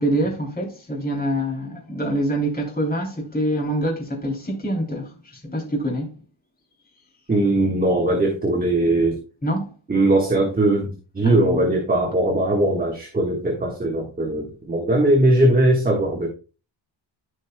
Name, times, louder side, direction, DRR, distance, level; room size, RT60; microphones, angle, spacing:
voice 1, 0.0-6.1 9.4-9.7 11.2-11.7, right 1 dB, 20° left, 3.1 m, -25 dB
voice 2, 7.3-9.2 9.9-16.3, right 1 dB, 20° right, 1.5 m, -20 dB
14.5 x 5.3 x 2.2 m
wide cardioid pair, 180°, 47 cm